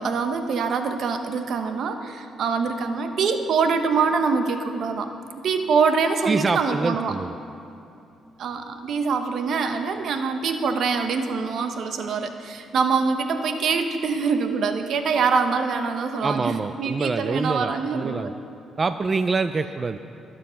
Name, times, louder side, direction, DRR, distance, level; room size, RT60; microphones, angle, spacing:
voice 1, 0.0-5.1 5.4-7.1 8.4-18.3, right 5 dB, 65° right, 7 dB, 1.1 m, -24 dB
voice 2, 6.3-7.4 16.2-18.3 18.8-20.0, right 4 dB, 30° right, 10 dB, 0.4 m, -25 dB
22.0 x 7.6 x 5.8 m, 2.7 s
cardioid pair, 90°, 0 cm